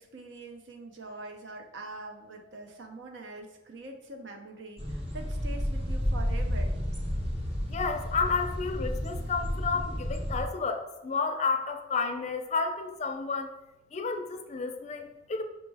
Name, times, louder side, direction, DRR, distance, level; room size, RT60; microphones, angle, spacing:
voice 1, 0.0-6.7, right 2 dB, 85° right, 4 dB, 0.6 m, -44 dB
sound 1, 4.8-10.5, equal, 35° right, 0.8 m, -31 dB
voice 2, 7.7-13.5 13.9-15.4, left 4 dB, 40° left, 6 dB, 0.4 m, -31 dB
5.3 x 2.1 x 3.3 m, 1.0 s
head